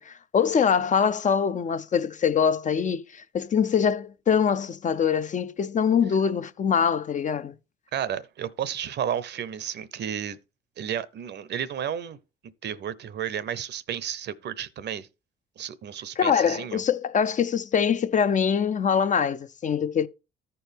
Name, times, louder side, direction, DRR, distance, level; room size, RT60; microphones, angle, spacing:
voice 1, 0.0-7.5 16.2-20.1, left 7 dB, 40° left, 0.4 m, -24 dB
voice 2, 7.9-10.4 10.8-12.2 12.6-15.1 15.6-16.8, right 9 dB, 60° right, 0.6 m, -32 dB
13.5 x 4.6 x 3.4 m
cardioid pair, 90°, 20 cm